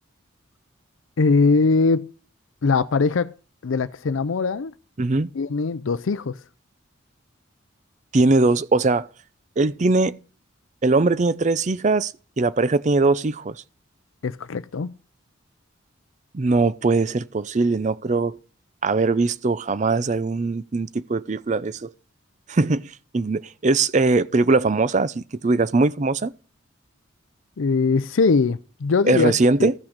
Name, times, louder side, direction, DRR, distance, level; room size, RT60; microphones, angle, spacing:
voice 1, 1.2-2.1 2.6-3.3 3.6-4.7 5.3-6.4 14.2-14.9 27.6-29.7, left 4 dB, 75° left, 0.5 m, -21 dB
voice 2, 5.0-5.3 8.1-9.1 9.6-10.2 10.8-13.6 16.3-18.4 18.8-21.9 22.5-26.3 29.0-29.7, right 3 dB, 35° right, 0.4 m, -21 dB
14.0 x 6.0 x 6.6 m
head